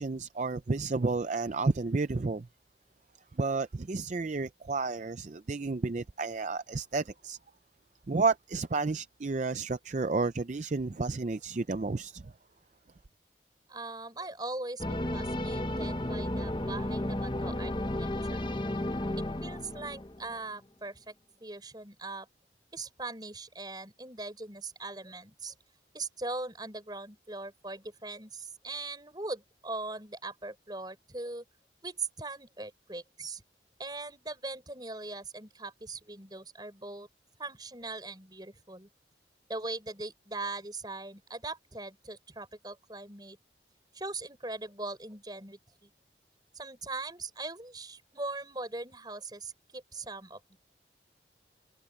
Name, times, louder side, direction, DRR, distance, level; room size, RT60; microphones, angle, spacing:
voice 1, 0.0-2.5 3.3-7.4 8.1-12.3, right 3 dB, 40° right, 0.5 m, -31 dB
voice 2, 13.7-17.7 18.0-18.5 19.4-21.1 21.4-22.3 22.7-25.5 25.9-31.4 31.8-33.4 33.8-37.1 37.4-38.9 39.5-43.4 43.9-45.9 46.5-50.6, right 3 dB, 25° right, 6.5 m, -40 dB
sound 1, 14.8-20.3, left 1 dB, 25° left, 1.0 m, -33 dB
head